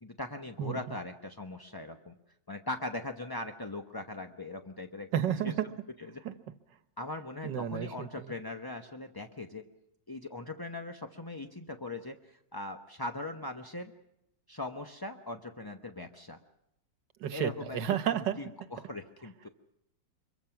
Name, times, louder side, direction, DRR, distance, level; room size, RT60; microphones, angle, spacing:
voice 1, 0.0-2.2 2.5-5.1 5.4-5.5 6.0-6.2 7.0-9.6 10.1-13.9 14.5-16.4 17.3-17.8 18.1-19.5, left 2 dB, 20° left, 5 dB, 0.5 m, -40 dB
voice 2, 0.6-1.0 5.1-5.7 6.3-6.4 7.4-8.1 17.2-18.4, right 9 dB, 75° right, 12 dB, 1.7 m, -31 dB
25.0 x 23.0 x 5.9 m, 0.83 s
omnidirectional pair, 2.0 m